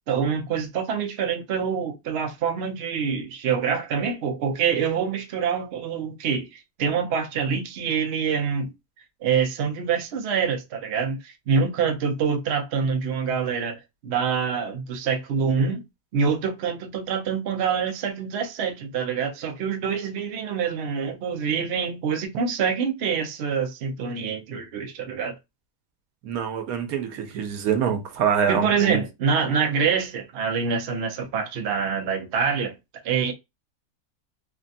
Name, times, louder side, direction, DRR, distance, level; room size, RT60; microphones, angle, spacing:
voice 1, 0.1-8.7 9.2-15.8 16.1-25.3 28.5-32.8 33.0-33.3, right 6 dB, 60° right, 0.8 m, -26 dB
voice 2, 26.2-29.0, right 7 dB, 80° right, 1.2 m, -25 dB
3.3 x 2.1 x 2.6 m
omnidirectional pair, 1.5 m